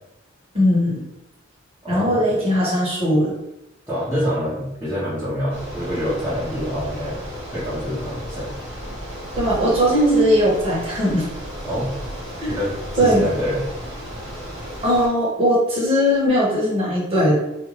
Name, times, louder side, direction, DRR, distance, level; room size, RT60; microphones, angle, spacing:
voice 1, 0.5-1.0 1.9-3.3 9.4-11.3 12.4-12.5 13.0-13.3 14.8-17.4, equal, 30° right, -7 dB, 1.2 m, -19 dB
voice 2, 1.8-2.3 3.9-7.2 7.5-8.5 11.6-11.9 12.5-13.6, equal, 10° right, -14 dB, 1.0 m, -26 dB
Bicycle, 5.5-15.1, equal, 60° right, 1.3 m, -34 dB
2.5 x 2.5 x 3.1 m, 0.88 s
head